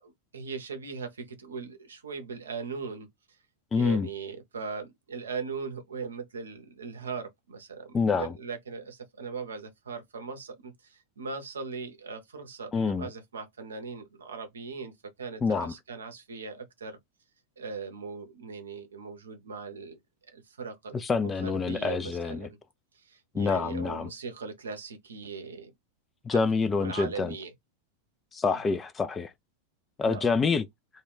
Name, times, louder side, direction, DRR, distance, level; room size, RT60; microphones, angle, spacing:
voice 1, 0.0-3.1 3.7-14.9 15.2-17.0 17.6-20.0 20.3-22.6 22.9-25.7 26.3-26.5 26.8-27.5 28.5-28.8 30.0-30.3, right 5 dB, 70° right, 0.6 m, -39 dB
voice 2, 3.7-4.1 7.9-8.3 12.7-13.1 15.4-15.7 20.9-22.5 23.3-24.1 26.2-27.3 28.3-29.3 30.0-30.7, left 4 dB, 20° left, 0.3 m, -27 dB
2.3 x 2.2 x 3.4 m
figure-of-eight pair, 90°, 0 cm